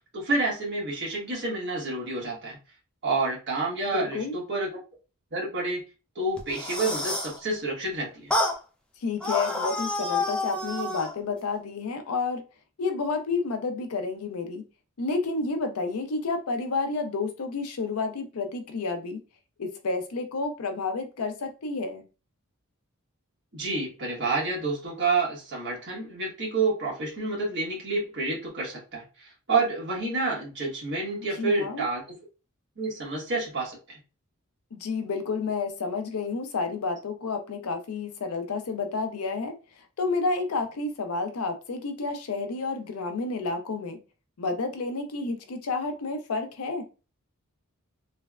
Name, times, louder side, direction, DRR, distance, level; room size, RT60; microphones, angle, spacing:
voice 1, 0.1-2.6 3.0-4.7 5.3-5.8 6.1-8.3 23.5-32.0 32.8-34.0, right 3 dB, 55° right, -4 dB, 1.3 m, -29 dB
voice 2, 3.9-4.4 9.0-12.4 12.8-14.6 15.0-19.2 19.6-22.0 31.4-31.9 34.7-39.5 40.0-44.0 44.4-46.8, left 4 dB, 85° left, 6 dB, 0.5 m, -30 dB
sound 1, 6.4-7.4 8.3-8.6 9.2-11.1, left 2 dB, 5° left, 0.4 m, -28 dB
3.2 x 2.1 x 2.3 m, 0.32 s
head